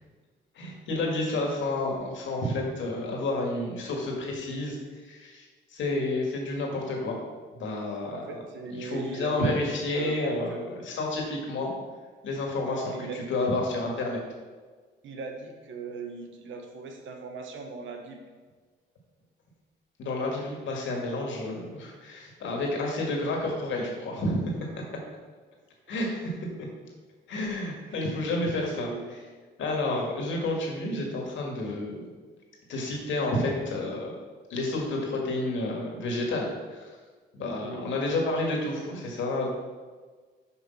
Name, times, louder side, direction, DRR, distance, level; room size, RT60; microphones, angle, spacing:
voice 1, 0.6-4.8 5.1-5.5 5.7-7.1 7.5-8.4 8.7-11.7 12.2-14.2 20.0-24.4 25.9-26.3 27.3-28.9 29.6-32.1 32.7-34.1 34.5-36.9 37.3-39.5, left 2 dB, 75° left, 0 dB, 2.0 m, -30 dB
voice 2, 8.1-10.7 12.7-13.2 15.0-18.2 27.9-29.1 37.6-37.8, right 4 dB, 75° right, 3 dB, 1.3 m, -39 dB
6.1 x 5.6 x 5.6 m, 1.4 s
cardioid pair, 90°, 20 cm